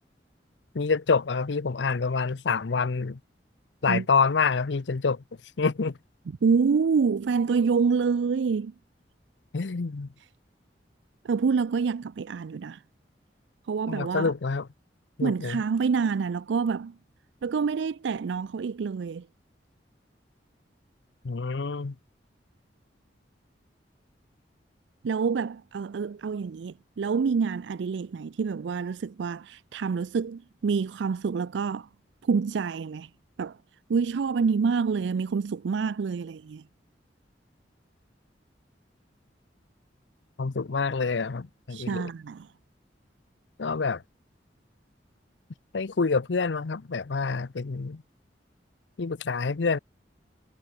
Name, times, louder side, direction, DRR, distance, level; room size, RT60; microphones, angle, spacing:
voice 1, 0.7-3.2 3.8-5.2 5.6-6.0 9.5-10.1 13.9-14.7 15.2-15.6 21.2-22.0 40.4-42.1 43.6-44.0 45.7-48.0 49.0-49.8, left 4 dB, 85° left, 0.7 m, -27 dB
voice 2, 6.4-8.7 11.2-12.8 13.7-14.3 15.2-16.9 17.4-19.3 25.0-31.9 32.2-33.1 33.4-33.6 33.9-36.6 41.7-42.4, right 5 dB, 90° right, 0.4 m, -27 dB
head